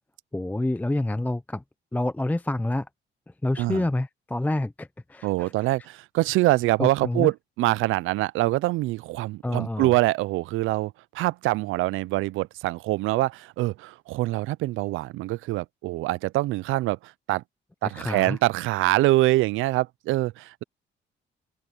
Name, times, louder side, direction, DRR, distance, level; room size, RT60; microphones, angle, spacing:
voice 1, 0.3-1.6 1.9-2.9 3.4-5.7 6.8-7.3 9.4-9.9 17.8-18.4, left 1 dB, 10° left, 0.6 m, -28 dB
voice 2, 5.2-17.4 17.8-20.6, right 18 dB, 85° right, 0.4 m, -25 dB
cardioid pair, 90°, 20 cm